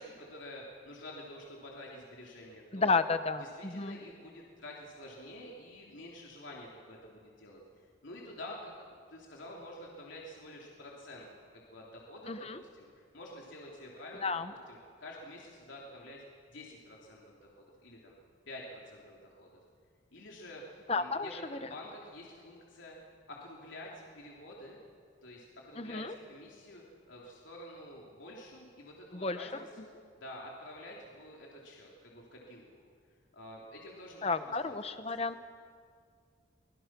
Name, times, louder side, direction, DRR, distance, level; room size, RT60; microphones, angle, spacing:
voice 1, 0.0-2.9 3.4-14.3 14.7-18.1 18.5-19.5 20.1-20.6 21.0-22.9 23.3-24.8 25.2-32.6 33.3-35.0, left 1 dB, 70° left, -3 dB, 3.1 m, -49 dB
voice 2, 2.7-4.0 12.3-12.6 14.2-14.5 20.9-21.6 25.8-26.2 29.1-29.5 34.2-35.4, left 4 dB, 30° left, 10 dB, 1.0 m, -32 dB
25.5 x 21.5 x 6.1 m, 2.1 s
head